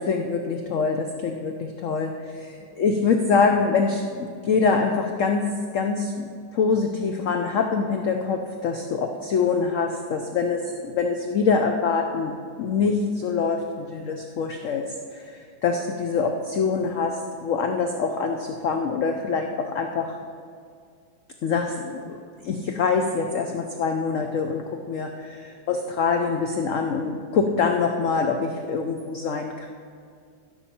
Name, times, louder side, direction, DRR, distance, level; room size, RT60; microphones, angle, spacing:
voice 1, 0.0-12.3 12.6-20.2 21.4-22.2 22.4-29.7, left 5 dB, 60° left, 4 dB, 0.8 m, -25 dB
15.5 x 7.1 x 4.3 m, 2.2 s
omnidirectional pair, 2.0 m